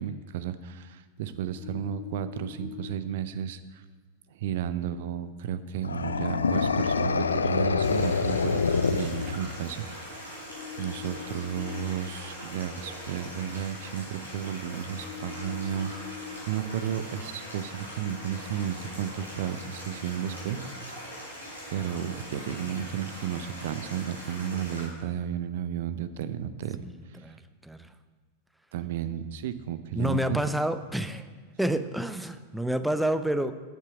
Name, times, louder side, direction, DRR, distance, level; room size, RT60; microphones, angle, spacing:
voice 1, 0.0-3.8 4.3-10.4 10.8-20.6 21.1-21.3 21.7-26.8 28.7-30.4, right 9 dB, 55° right, 12 dB, 0.5 m, -33 dB
sound 1, 1.6-2.9 6.0-7.4 10.5-11.9 15.0-16.4, left 10 dB, 40° left, 2.1 m, -42 dB
sound 2, 5.8-9.7, left 5 dB, 75° left, 0.3 m, -26 dB
Stream, 7.8-24.9, equal, 90° right, 3.4 m, -42 dB
voice 2, 26.8-27.4 27.6-27.9 29.9-31.3 31.6-33.5, equal, ahead, 10 dB, 0.5 m, -29 dB
9.1 x 7.4 x 6.2 m, 1.4 s
figure-of-eight pair, 90°, 0 cm